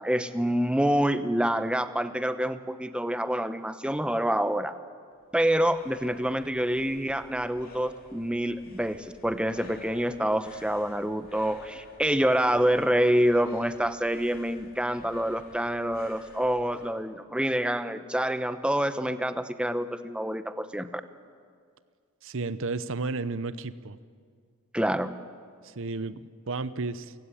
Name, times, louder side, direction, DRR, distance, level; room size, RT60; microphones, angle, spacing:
voice 1, 0.0-4.7 5.3-20.9 24.7-25.1, equal, 5° right, 11 dB, 0.8 m, -27 dB
sound 1, 5.1-17.0, left 3 dB, 40° left, 2.8 m, -51 dB
voice 2, 22.2-24.0 25.6-27.1, right 3 dB, 60° right, 15 dB, 0.8 m, -33 dB
29.5 x 16.0 x 9.9 m, 2.1 s
head